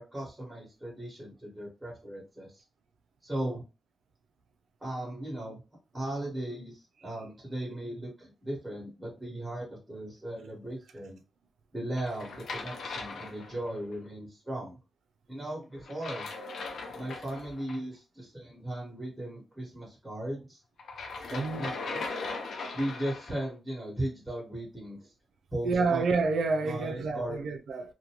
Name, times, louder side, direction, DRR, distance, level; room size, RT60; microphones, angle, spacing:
voice 1, 0.0-2.6 3.2-3.6 4.8-5.6 5.9-11.2 11.7-14.8 15.3-16.3 16.9-20.6 21.3-22.0 22.7-25.1 25.5-26.0 26.6-27.4, right 1 dB, 10° right, 1.3 m, -37 dB
sound 1, 12.0-13.9 15.8-17.8 20.8-23.5, left 3 dB, 75° left, 0.5 m, -39 dB
voice 2, 21.3-21.7 25.6-27.9, right 4 dB, 80° right, 0.4 m, -28 dB
2.6 x 2.2 x 2.9 m
wide cardioid pair, 125°, 0 cm